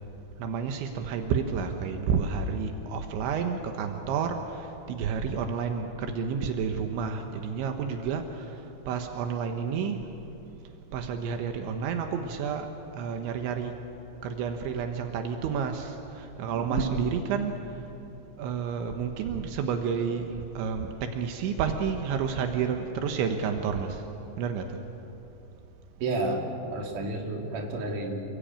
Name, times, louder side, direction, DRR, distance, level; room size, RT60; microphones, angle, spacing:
voice 1, 0.4-10.0 10.9-12.7 12.9-13.7 14.2-17.7 18.4-24.0 24.4-24.8, right 6 dB, 80° right, 5 dB, 3.6 m, -30 dB
voice 2, 16.5-17.1 26.0-28.2, right 2 dB, 50° right, 1 dB, 4.1 m, -31 dB
28.5 x 21.5 x 9.0 m, 2.9 s
omnidirectional pair, 5.2 m